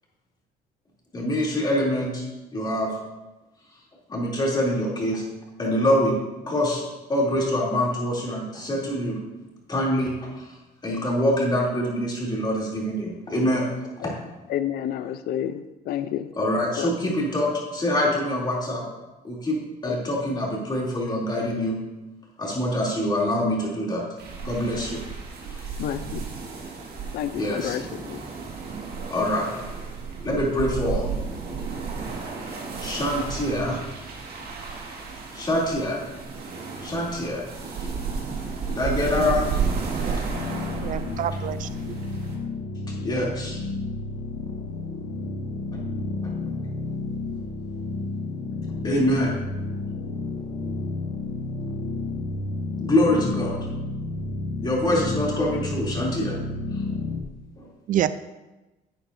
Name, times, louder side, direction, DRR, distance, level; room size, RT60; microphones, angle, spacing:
voice 1, 1.1-2.2 2.5-3.0 4.1-5.2 5.6-6.1 6.5-6.8 7.1-9.2 9.7-10.5 10.8-13.7 14.0-14.1 16.4-18.8 19.2-19.6 19.8-21.8 22.4-24.0 24.4-25.0 25.5-25.6 27.4-27.7 29.1-29.5 30.2-31.1 32.8-33.8 35.3-36.0 36.8-37.4 37.8-37.9 38.7-39.4 40.1-40.2 43.0-43.6 48.8-49.3 52.8-53.6 54.6-56.4 56.7-56.8 57.6-57.7, left 1 dB, 25° left, -4 dB, 2.9 m, -25 dB
voice 2, 14.5-16.3 16.8-17.1 19.8-20.0 25.8-26.2 27.1-28.3, left 10 dB, 65° left, 12 dB, 0.5 m, -30 dB
sound 1, 24.2-42.4, right 5 dB, 65° right, 1.9 m, -32 dB
sound 2, 40.3-57.2, left 3 dB, 85° left, 1.3 m, -31 dB
voice 3, 40.8-42.0 57.9-58.2, right 11 dB, 50° right, 14 dB, 0.5 m, -27 dB
10.5 x 8.6 x 2.7 m, 1.1 s
cardioid pair, 110°, 17 cm